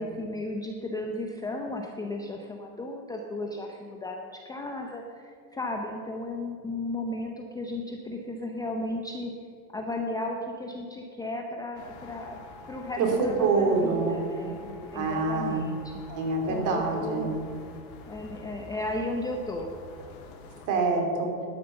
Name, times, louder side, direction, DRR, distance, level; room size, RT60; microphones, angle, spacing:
voice 1, 0.0-9.3 9.7-12.4 12.7-16.0 16.5-17.3 18.1-19.7, left 2 dB, 10° left, 2 dB, 0.6 m, -35 dB
sound 1, 11.7-20.7, left 3 dB, 60° left, 2.6 m, -47 dB
voice 2, 13.0-14.2 14.9-15.7 16.1-17.3 20.7-21.3, right 3 dB, 40° right, 2 dB, 3.0 m, -26 dB
11.5 x 9.6 x 6.8 m, 2.3 s
supercardioid pair, 135°, 47 cm